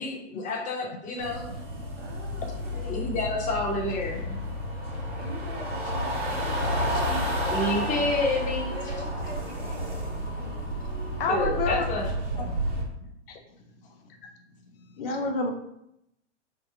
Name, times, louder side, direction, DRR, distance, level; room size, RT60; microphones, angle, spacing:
voice 1, 0.0-1.4 2.7-4.3 7.5-8.9 11.3-12.1, left 2 dB, 20° left, -1 dB, 0.9 m, -29 dB
sound 1, 1.2-12.8, equal, 75° right, 1.3 m, -31 dB
voice 2, 2.0-3.1 5.1-7.9 8.2-10.6 12.0-12.6, right 2 dB, 25° right, 0 dB, 0.6 m, -42 dB
voice 3, 11.2-11.8 15.0-15.5, left 3 dB, 50° left, 3 dB, 0.6 m, -28 dB
4.0 x 2.1 x 4.2 m, 0.79 s
figure-of-eight pair, 105°, 37 cm